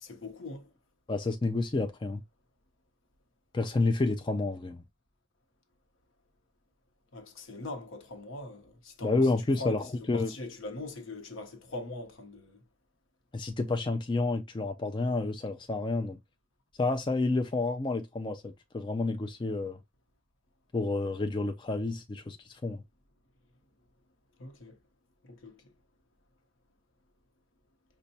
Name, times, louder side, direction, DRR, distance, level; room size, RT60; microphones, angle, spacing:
voice 1, 0.0-0.7 7.1-12.6 24.4-24.8 25.2-25.7, left 2 dB, 75° left, 0.8 m, -42 dB
voice 2, 1.1-2.2 3.5-4.8 9.0-10.3 13.3-16.2 16.8-19.8 20.7-22.8, left 3 dB, 25° left, 0.3 m, -30 dB
5.1 x 2.2 x 2.7 m
head